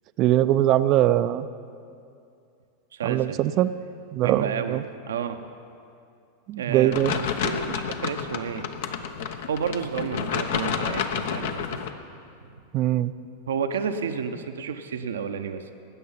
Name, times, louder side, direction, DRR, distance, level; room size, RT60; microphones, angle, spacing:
voice 1, 0.2-1.5 3.0-3.7 4.1-4.8 6.5-7.1 12.7-13.1, right 13 dB, 45° right, 13 dB, 0.5 m, -21 dB
voice 2, 2.9-3.4 4.2-5.3 6.6-9.0 9.5-11.8 13.5-15.7, right 7 dB, 75° right, 7 dB, 0.8 m, -31 dB
sound 1, 6.9-11.9, left 7 dB, 65° left, 0.9 m, -30 dB
19.5 x 9.3 x 5.7 m, 2.5 s
hypercardioid pair, 90°, 0 cm